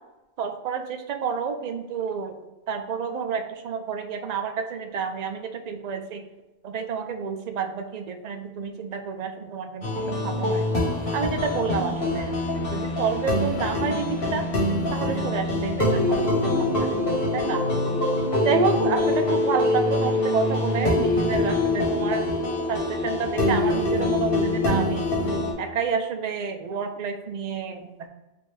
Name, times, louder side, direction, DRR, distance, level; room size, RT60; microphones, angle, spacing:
voice 1, 0.4-2.3 2.7-6.2 6.6-10.6 11.1-14.5 14.9-17.7 18.4-22.3 22.7-25.1 25.6-28.1, right 6 dB, 55° right, 5 dB, 0.5 m, -29 dB
sound 1, 9.8-25.5, left 2 dB, 65° left, 1.1 m, -24 dB
3.2 x 2.7 x 4.3 m, 1.0 s
omnidirectional pair, 1.0 m